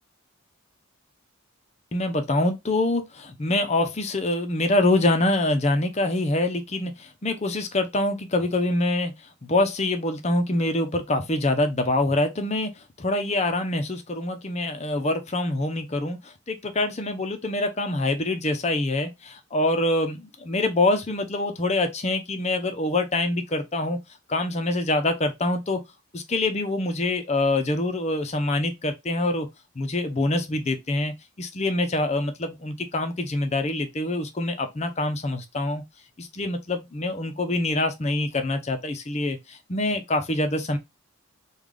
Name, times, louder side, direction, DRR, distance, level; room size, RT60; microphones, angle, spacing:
voice 1, 1.9-9.1 9.4-24.0 24.3-25.8 26.1-29.5 29.8-35.8 36.2-40.8, left 2 dB, 30° left, 0.6 m, -25 dB
3.3 x 2.4 x 3.7 m
head